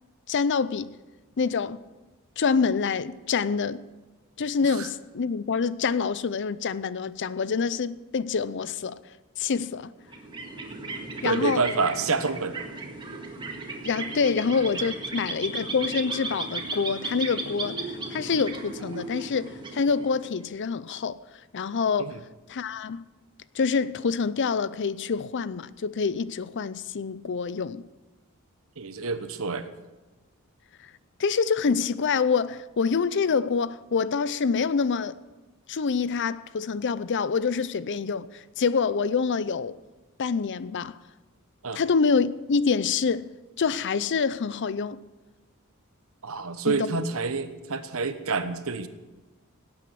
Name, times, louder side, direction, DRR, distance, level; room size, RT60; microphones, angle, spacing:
voice 1, 0.3-0.9 1.4-1.8 2.4-3.8 4.4-9.0 9.4-9.9 11.2-11.6 13.8-21.2 21.5-22.2 22.5-23.0 23.5-27.8 31.2-35.2 35.7-39.7 40.2-41.0 41.7-43.3 43.6-45.0 46.7-47.0, left 5 dB, 55° left, 0.5 m, -26 dB
sound 1, 10.0-20.4, right 3 dB, 20° right, 1.8 m, -36 dB
voice 2, 11.2-12.6 22.0-22.2 28.8-29.7 41.6-41.8 46.2-48.9, right 4 dB, 70° right, 1.0 m, -28 dB
17.5 x 8.5 x 6.2 m
head